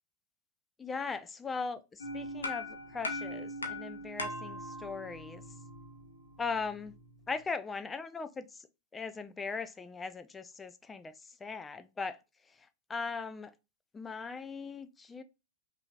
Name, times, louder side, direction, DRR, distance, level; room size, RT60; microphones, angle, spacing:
voice 1, 0.8-5.4 6.4-6.9 7.3-8.7 8.9-12.2 12.9-13.5 13.9-15.2, left 4 dB, 15° left, 0.4 m, -39 dB
sound 1, 2.0-7.3, left 1 dB, 75° left, 0.8 m, -41 dB
5.6 x 2.7 x 2.3 m
figure-of-eight pair, 90°, 0 cm